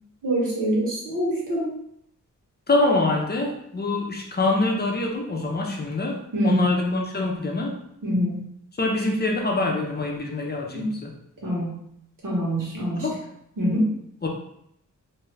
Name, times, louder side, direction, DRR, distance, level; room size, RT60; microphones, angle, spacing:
voice 1, 0.2-1.7 6.3-6.6 8.0-8.4 10.7-10.9 11.4-11.8 12.2-13.1 13.6-13.9, equal, 80° right, -5 dB, 1.2 m, -24 dB
voice 2, 2.7-7.8 8.8-11.1 13.0-13.2 14.2-14.3, left 2 dB, 30° left, 0 dB, 0.6 m, -25 dB
2.7 x 2.4 x 3.2 m, 0.74 s
wide cardioid pair, 85°, 32 cm